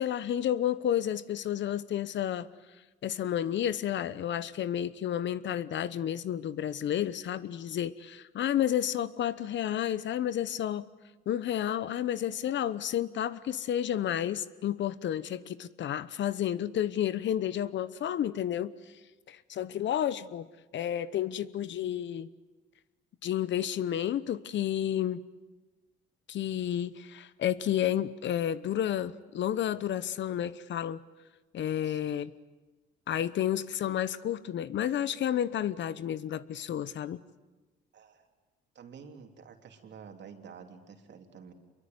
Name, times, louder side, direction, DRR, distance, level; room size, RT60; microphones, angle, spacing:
voice 1, 0.0-2.5 3.0-10.9 11.3-18.7 19.3-20.5 20.7-22.3 23.2-25.2 26.3-31.0 31.5-32.3 33.1-37.2, left 10 dB, 65° left, 16 dB, 1.0 m, -31 dB
voice 2, 37.9-38.3 38.7-41.5, right 6 dB, 65° right, 5 dB, 3.3 m, -50 dB
26.0 x 23.0 x 9.5 m, 1.2 s
cardioid pair, 90°, 20 cm